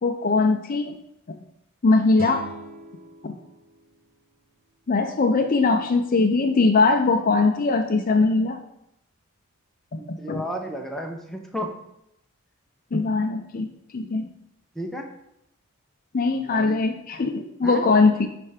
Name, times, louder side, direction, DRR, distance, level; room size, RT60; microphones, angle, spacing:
voice 1, 0.0-1.0 1.8-2.5 3.2-3.4 4.9-8.6 9.9-10.4 12.9-14.3 16.1-18.3, left 3 dB, 40° left, 6 dB, 0.5 m, -21 dB
sound 1, 2.1-5.2, right 2 dB, 40° right, 1.0 m, -42 dB
voice 2, 10.0-11.7 14.7-15.1 16.3-16.8 17.6-17.8, equal, ahead, 1 dB, 0.7 m, -33 dB
9.9 x 3.4 x 4.9 m, 0.81 s
head